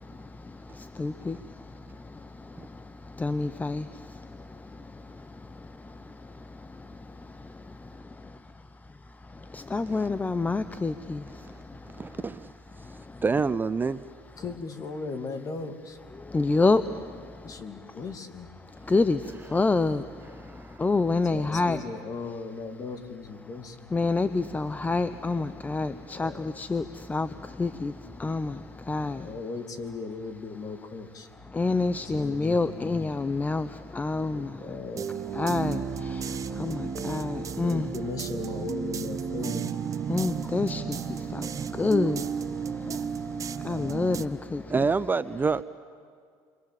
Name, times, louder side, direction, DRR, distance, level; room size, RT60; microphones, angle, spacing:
voice 1, 0.0-7.5 9.3-12.2 12.8-13.2 16.2-17.6 18.8-21.8 23.9-29.3 31.5-34.6 35.3-37.9 40.1-44.9, left 3 dB, 20° left, 13 dB, 0.7 m, -29 dB
voice 2, 12.0-12.5 13.2-14.1 20.4-20.8 44.7-45.6, right 4 dB, 20° right, 15 dB, 0.6 m, -27 dB
voice 3, 14.4-16.0 17.4-18.5 21.3-23.9 25.8-26.4 29.1-31.3 31.9-33.0 34.3-35.1 37.6-39.8, left 4 dB, 40° left, 7 dB, 2.7 m, -37 dB
sound 1, 34.9-44.3, right 7 dB, 35° right, 0.9 m, -33 dB
30.0 x 23.5 x 7.8 m, 2.1 s
supercardioid pair, 95°, 9 cm